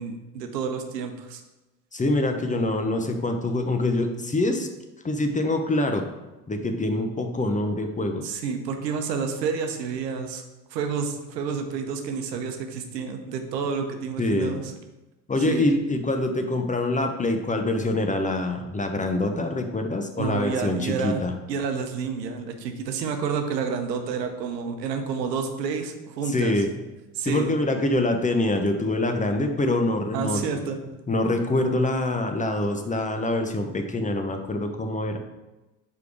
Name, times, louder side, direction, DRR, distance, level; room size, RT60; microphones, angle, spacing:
voice 1, 0.0-1.4 8.2-10.4 10.7-14.7 15.5-15.7 20.2-21.2 21.5-26.6 27.1-27.5 30.1-30.8, right 6 dB, 90° right, 6 dB, 0.9 m, -29 dB
voice 2, 1.9-4.7 5.0-6.0 6.5-8.3 14.2-14.6 15.3-21.3 26.3-26.7 27.2-30.6 31.1-35.2, left 2 dB, 15° left, 5 dB, 0.8 m, -25 dB
4.9 x 4.9 x 4.7 m, 1.1 s
hypercardioid pair, 70°, 48 cm